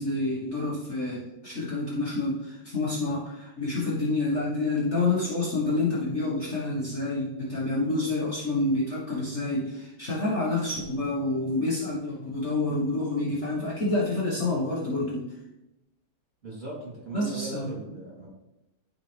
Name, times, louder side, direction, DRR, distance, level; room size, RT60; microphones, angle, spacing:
voice 1, 0.0-15.3 17.1-17.8, left 2 dB, 40° left, -7 dB, 1.7 m, -28 dB
voice 2, 16.4-18.3, right 2 dB, 30° right, -6 dB, 3.4 m, -38 dB
12.5 x 4.2 x 3.4 m, 0.92 s
omnidirectional pair, 2.0 m